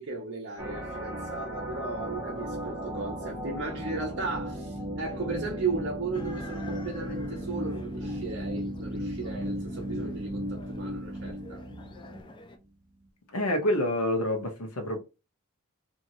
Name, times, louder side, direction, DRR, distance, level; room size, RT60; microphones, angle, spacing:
voice 1, 0.0-11.6, right 4 dB, 55° right, 0.6 m, -36 dB
sound 1, 0.6-12.3, equal, 15° right, 0.9 m, -35 dB
sound 2, 6.1-12.6, left 2 dB, 20° left, 0.4 m, -48 dB
voice 2, 13.3-15.0, left 1 dB, 85° left, 0.9 m, -27 dB
2.8 x 2.7 x 2.6 m
head